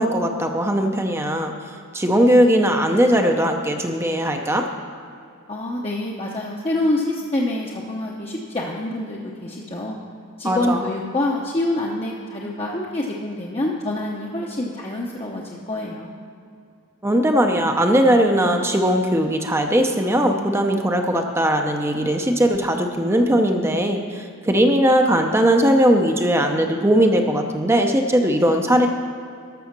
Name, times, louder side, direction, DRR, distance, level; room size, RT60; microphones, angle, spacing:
voice 1, 0.0-1.5 1.9-4.7 10.4-10.8 17.0-28.9, equal, 10° right, 4 dB, 0.6 m, -19 dB
voice 2, 5.5-10.0 10.4-16.1, left 1 dB, 25° left, -3 dB, 0.8 m, -26 dB
13.5 x 6.3 x 5.9 m, 2.5 s
head